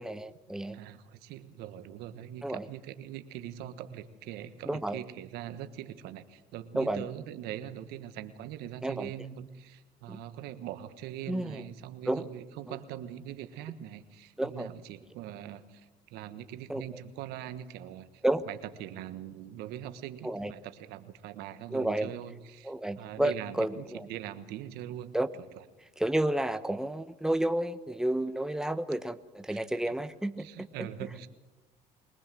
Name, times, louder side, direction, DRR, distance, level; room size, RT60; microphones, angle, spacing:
voice 1, 0.0-0.8 2.4-2.6 4.7-5.0 6.7-7.0 8.8-9.1 10.1-10.2 11.3-11.6 12.1-12.2 12.7-12.8 14.4-14.7 16.7-17.0 18.2-18.4 20.2-20.5 21.7-22.1 22.6-24.0 25.1-25.3 26.0-30.9, right 1 dB, 5° right, 10 dB, 1.2 m, -31 dB
voice 2, 0.7-25.6 29.5-29.9 30.4-31.3, right 11 dB, 80° right, 11 dB, 1.4 m, -42 dB
23.5 x 19.0 x 7.7 m, 1.1 s
supercardioid pair, 80°, 16 cm